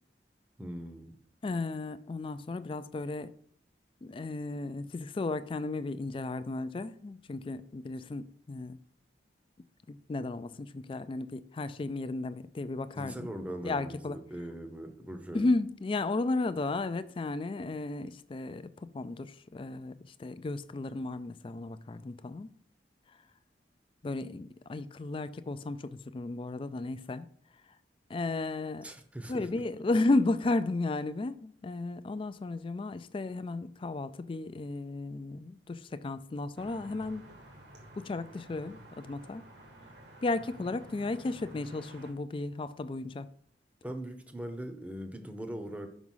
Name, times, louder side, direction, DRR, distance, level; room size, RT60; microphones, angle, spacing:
voice 1, 0.6-1.1 12.9-15.5 28.8-29.5 43.8-45.9, right 1 dB, 10° right, 0.7 m, -40 dB
voice 2, 1.4-3.3 4.0-8.8 9.9-13.3 13.6-14.2 15.3-22.5 24.0-27.3 28.1-28.9 29.3-37.3 38.0-39.4 40.2-43.3, left 2 dB, 30° left, 0.3 m, -34 dB
sound 1, 36.6-42.1, right 1 dB, 75° right, 1.6 m, -51 dB
6.1 x 4.9 x 5.5 m
head